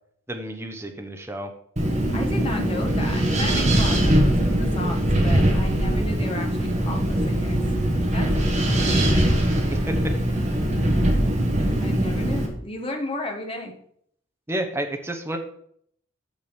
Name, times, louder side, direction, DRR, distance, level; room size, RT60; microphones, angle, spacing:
voice 1, 0.3-1.5 9.9-10.0 14.5-15.4, right 1 dB, 10° right, 4 dB, 0.9 m, -30 dB
Wind, 1.8-12.5, right 1 dB, 35° right, 1.6 m, -21 dB
voice 2, 2.1-7.6 8.1-8.3 8.7-9.4 11.2-11.3 11.8-13.7, left 1 dB, 25° left, 3 dB, 1.3 m, -33 dB
8.4 x 6.1 x 5.3 m, 0.67 s
head